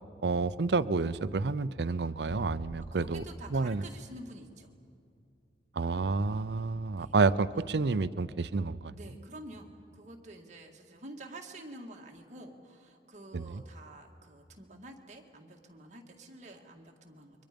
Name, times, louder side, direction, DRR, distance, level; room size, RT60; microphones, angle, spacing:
voice 1, 0.2-3.2 3.5-3.8 5.8-9.0 13.3-13.6, right 4 dB, 70° right, 16 dB, 0.6 m, -29 dB
sound 1, 2.3-4.7, equal, 65° left, 2.9 m, -46 dB
voice 2, 2.9-4.7 6.9-7.1 7.6-7.7 8.9-17.4, right 1 dB, 40° right, 1 dB, 2.0 m, -49 dB
29.5 x 23.5 x 5.2 m, 2.5 s
head